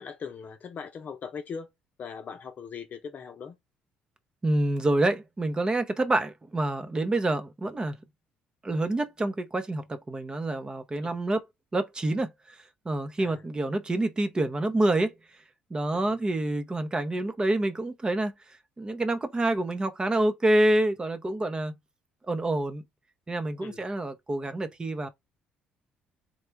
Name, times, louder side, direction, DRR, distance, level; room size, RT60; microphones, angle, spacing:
voice 1, 0.0-1.7 2.0-3.6 11.0-11.2 13.2-13.4 15.9-16.0 23.6-23.8, left 6 dB, 50° left, 0.8 m, -40 dB
voice 2, 4.4-8.0 8.6-11.4 11.7-15.1 15.7-18.3 18.8-21.7 22.3-22.8 23.3-25.1, right 1 dB, 25° right, 0.7 m, -27 dB
3.3 x 2.3 x 3.2 m
supercardioid pair, 70°, 4 cm